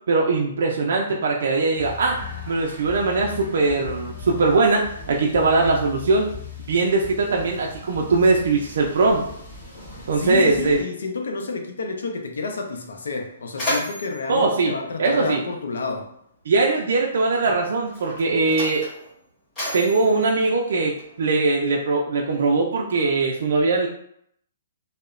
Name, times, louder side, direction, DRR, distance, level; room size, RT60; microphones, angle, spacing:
voice 1, 0.1-2.2 2.5-6.3 6.7-9.2 10.1-10.8 14.3-14.7 15.0-15.4 16.5-18.9 19.7-23.9, right 3 dB, 65° right, -1 dB, 0.3 m, -21 dB
sound 1, 1.7-10.8, left 5 dB, 35° left, 1.1 m, -39 dB
voice 2, 10.2-16.1, left 4 dB, 85° left, 4 dB, 0.5 m, -30 dB
Mechanisms, 13.1-15.8 16.8-16.9 17.8-21.3, left 1 dB, 20° left, 1.5 m, -33 dB
2.9 x 2.1 x 2.4 m, 0.71 s
hypercardioid pair, 160°, 0 cm